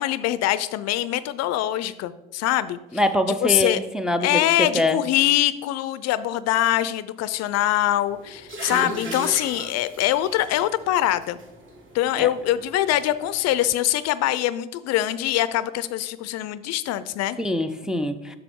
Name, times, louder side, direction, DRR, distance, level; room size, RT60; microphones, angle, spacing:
voice 1, 0.0-2.8 3.3-3.8 4.2-11.4 11.9-17.4, left 13 dB, 60° left, 15 dB, 0.4 m, -23 dB
voice 2, 2.9-5.0 8.7-9.3 12.2-12.3 17.4-18.4, left 1 dB, ahead, 6 dB, 0.4 m, -25 dB
sound 1, 8.0-13.7, right 2 dB, 40° right, 1.8 m, -39 dB
6.8 x 6.7 x 3.6 m, 0.96 s
supercardioid pair, 90°, 30 cm